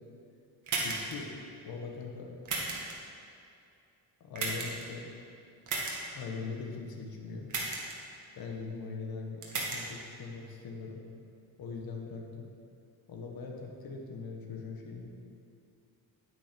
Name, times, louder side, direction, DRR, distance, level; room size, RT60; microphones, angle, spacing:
sound 1, 0.7-1.1 2.5-2.9 4.4-4.8 5.7-6.0 7.5-7.9 9.4-9.8, right 3 dB, 50° right, 1.9 m, -33 dB
voice 1, 0.8-1.3 1.6-2.3 4.2-5.1 6.1-7.5 8.3-11.0 11.6-12.5 13.1-15.1, left 4 dB, 70° left, 1 dB, 1.6 m, -41 dB
10.0 x 8.7 x 5.3 m, 2.5 s
cardioid pair, 155°, 37 cm